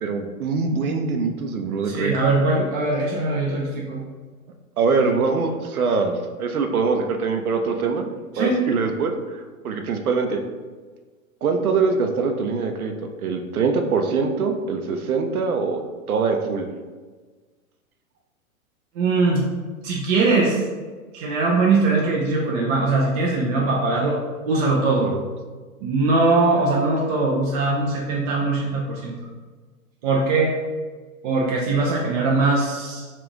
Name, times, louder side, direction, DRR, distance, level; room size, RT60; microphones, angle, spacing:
voice 1, 0.0-2.1 4.8-8.1 8.4-10.4 11.4-12.9 13.2-15.8 16.1-16.7 25.0-25.2, right 4 dB, 80° right, 5 dB, 0.6 m, -23 dB
voice 2, 1.8-4.0 8.3-8.6 19.0-19.4 19.8-20.6 21.1-24.2 24.5-25.1 25.8-29.1 30.0-30.5 31.2-33.1, right 3 dB, 30° right, -3 dB, 0.4 m, -21 dB
3.6 x 2.4 x 3.5 m, 1.4 s
figure-of-eight pair, 105°, 43 cm